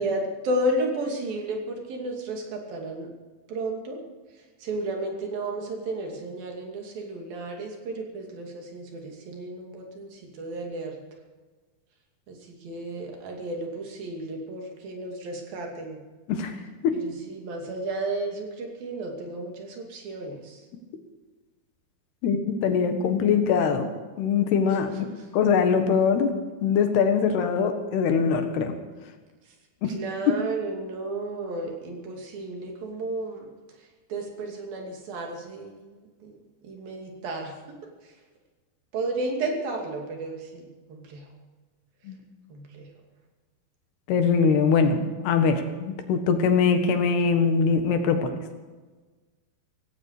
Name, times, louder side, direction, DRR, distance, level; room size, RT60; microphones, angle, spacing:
voice 1, 0.0-3.1 3.5-4.0 4.6-11.0 12.3-16.0 16.9-20.6 29.9-33.5 34.1-37.5 38.0-38.1 38.9-41.3 42.5-42.9, right 2 dB, 65° right, 2 dB, 4.3 m, -33 dB
voice 2, 22.2-23.9 24.2-24.9 25.3-26.3 26.6-28.7 29.8-29.9 42.1-42.2 44.1-48.3, left 6 dB, 85° left, 7 dB, 3.7 m, -22 dB
17.0 x 16.5 x 4.9 m, 1.3 s
omnidirectional pair, 4.5 m